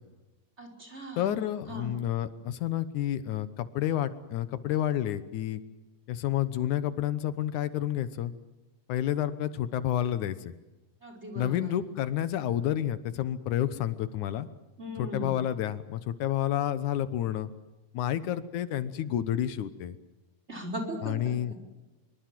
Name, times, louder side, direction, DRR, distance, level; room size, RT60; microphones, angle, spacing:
voice 1, 0.6-1.3 1.7-1.9 11.0-11.7 14.8-15.4 20.5-21.4, equal, 20° right, 4 dB, 5.0 m, -38 dB
voice 2, 1.2-5.6 6.1-8.3 8.9-10.5 11.4-14.5 15.0-17.5 17.9-20.0 21.0-21.6, left 11 dB, 80° left, 13 dB, 2.5 m, -30 dB
25.5 x 23.5 x 7.6 m, 1.1 s
omnidirectional pair, 3.5 m